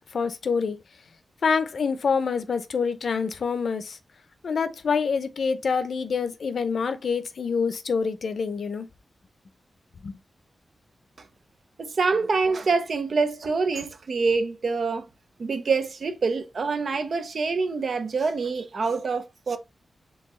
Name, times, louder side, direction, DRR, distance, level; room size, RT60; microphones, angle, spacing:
voice 1, 0.1-0.8 1.4-4.0 4.4-8.9 10.0-10.2, left 5 dB, 65° left, 0.6 m, -26 dB
voice 2, 11.8-15.1 15.4-19.6, right 4 dB, 60° right, 0.7 m, -26 dB
4.7 x 3.4 x 3.1 m
wide cardioid pair, 115°, 0 cm